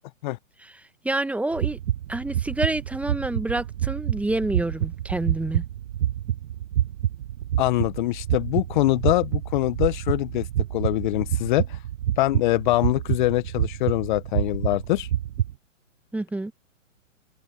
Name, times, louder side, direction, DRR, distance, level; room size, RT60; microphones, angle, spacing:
voice 1, 1.0-1.8 2.1-5.6 16.1-16.5, right 2 dB, 5° right, 1.3 m, -27 dB
sound 1, 1.5-15.5, right 11 dB, 70° right, 0.6 m, -28 dB
voice 2, 7.6-11.8 12.2-15.1, left 18 dB, 35° left, 1.0 m, -24 dB
hypercardioid pair, 130°, 40 cm